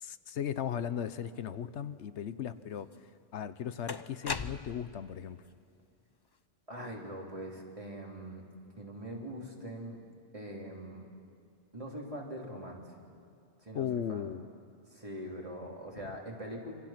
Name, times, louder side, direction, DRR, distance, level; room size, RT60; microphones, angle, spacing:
voice 1, 0.0-2.9 3.3-5.4 13.7-14.5 16.0-16.1, left 9 dB, 80° left, 13 dB, 1.1 m, -37 dB
sound 1, 2.9-3.0 3.9-5.0, left 4 dB, 30° left, 0.5 m, -38 dB
voice 2, 6.7-8.4 8.8-10.0 10.3-11.1 11.7-12.8 13.6-14.3 14.9-16.7, right 1 dB, 30° right, -2 dB, 3.6 m, -42 dB
27.0 x 26.0 x 5.9 m, 2.4 s
omnidirectional pair, 1.2 m